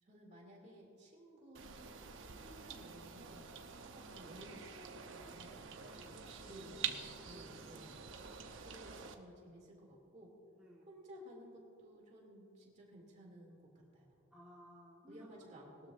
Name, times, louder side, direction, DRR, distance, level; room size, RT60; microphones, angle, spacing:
voice 1, 0.0-3.4 3.8-6.2 6.5-7.0 7.2-8.0 8.6-10.3 10.8-14.1 15.1-15.9, equal, 35° right, -2 dB, 2.6 m, -56 dB
sound 1, 1.5-9.1, right 7 dB, 65° right, 0.8 m, -47 dB
voice 2, 5.2-5.6 6.0-6.9 7.3-7.7 10.6-10.9 14.3-15.5, equal, 5° right, -7 dB, 1.5 m, -58 dB
20.5 x 13.0 x 2.6 m, 2.9 s
head